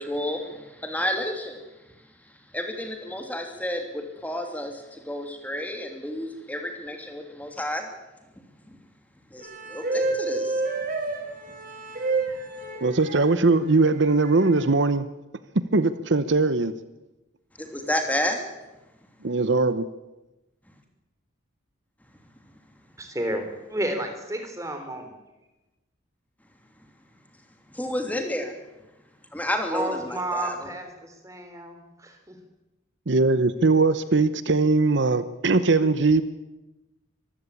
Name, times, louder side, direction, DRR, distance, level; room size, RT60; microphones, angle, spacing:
voice 1, 0.0-1.6 2.5-7.9 8.6-8.7 9.3-10.6 17.6-18.4 27.7-28.5 29.3-30.7, left 1 dB, 10° left, 4 dB, 2.9 m, -30 dB
sound 1, 9.4-13.3 14.0-14.6, right 3 dB, 45° right, 5.3 m, -29 dB
voice 2, 12.8-15.1 15.5-16.7 19.2-19.9 33.1-36.2, right 3 dB, 65° right, 13 dB, 0.9 m, -21 dB
voice 3, 23.0-23.4 23.7-25.1 29.7-32.4, right 1 dB, 15° right, 6 dB, 3.5 m, -31 dB
24.5 x 15.0 x 8.6 m, 1.0 s
head